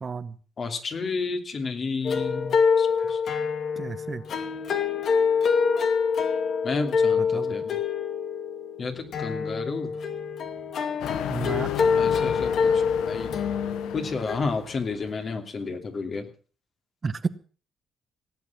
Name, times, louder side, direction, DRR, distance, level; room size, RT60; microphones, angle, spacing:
voice 1, 0.0-0.4 3.8-4.2 7.2-7.5 11.3-11.7 17.0-17.3, right 5 dB, 35° right, 13 dB, 1.0 m, -31 dB
voice 2, 0.6-3.2 6.6-7.7 8.8-9.9 11.9-13.3 13.9-16.2, left 4 dB, 45° left, 5 dB, 2.9 m, -31 dB
sound 1, 2.0-14.4, left 6 dB, 60° left, 2.3 m, -25 dB
sound 2, 11.0-15.1, left 11 dB, 85° left, 1.0 m, -35 dB
18.0 x 8.4 x 7.3 m, 0.41 s
cardioid pair, 90°, 0 cm